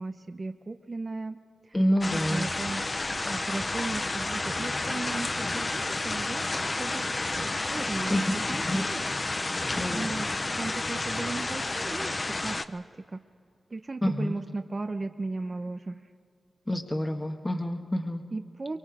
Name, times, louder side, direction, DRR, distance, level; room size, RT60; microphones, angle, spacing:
voice 1, 0.0-1.8 2.3-2.9 3.2-7.0 7.4-9.0 9.7-10.3 10.5-13.2 13.7-16.0 18.3-18.8, right 3 dB, 40° right, 8 dB, 0.8 m, -36 dB
voice 2, 1.7-2.5 8.1-8.2 8.7-8.9 9.8-10.1 14.0-14.4 16.7-18.2, equal, 20° left, 4 dB, 1.3 m, -27 dB
sound 1, 2.0-12.7, left 2 dB, 35° left, 0.8 m, -31 dB
24.5 x 23.0 x 4.9 m, 2.2 s
cardioid pair, 55°, 0 cm